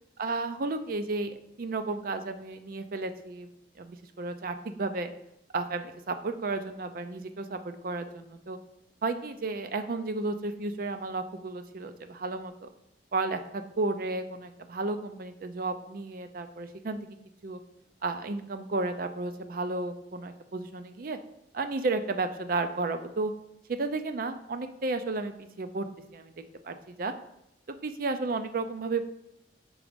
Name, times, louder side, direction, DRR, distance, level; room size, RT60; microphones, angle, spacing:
voice 1, 0.2-3.5 3.8-5.1 5.5-8.6 9.0-12.7 13.1-17.1 17.4-17.6 18.0-21.2 21.5-23.3 23.7-25.9 26.1-26.3 26.6-27.1 27.7-29.0, right 3 dB, 55° right, 9 dB, 0.5 m, -33 dB
4.8 x 4.0 x 5.1 m, 0.83 s
head